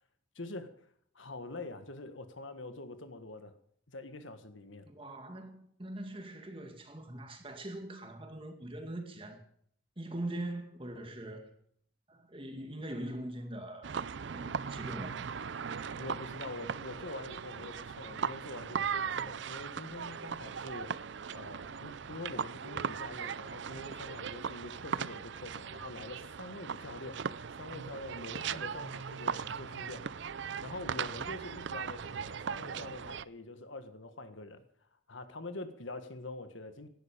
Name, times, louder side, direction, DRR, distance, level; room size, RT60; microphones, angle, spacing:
voice 1, 0.3-0.9 1.1-3.5 3.9-4.9 15.9-30.3 30.6-36.9, left 2 dB, 75° left, 1.6 m, -45 dB
voice 2, 4.9-9.4 10.0-11.6 12.1-13.9 14.2-15.3, right 1 dB, 25° right, 2.2 m, -42 dB
sound 1, 13.8-33.3, right 6 dB, 65° right, 0.5 m, -38 dB
17.5 x 12.0 x 5.1 m
head